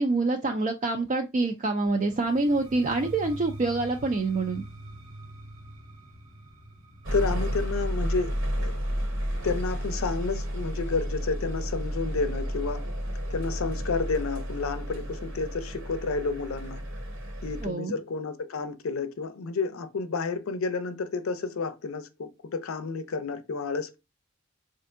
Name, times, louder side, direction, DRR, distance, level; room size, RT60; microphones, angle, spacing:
voice 1, 0.0-4.6 17.6-17.9, right 3 dB, 35° right, 0.3 m, -26 dB
sound 1, 1.9-11.6, right 1 dB, 90° right, 0.9 m, -46 dB
sound 2, 7.0-17.7, equal, 60° right, 0.9 m, -31 dB
voice 2, 7.1-8.3 8.6-8.8 9.4-12.8 13.3-16.8 17.4-24.0, left 4 dB, 75° left, 0.5 m, -30 dB
4.3 x 2.5 x 2.5 m
head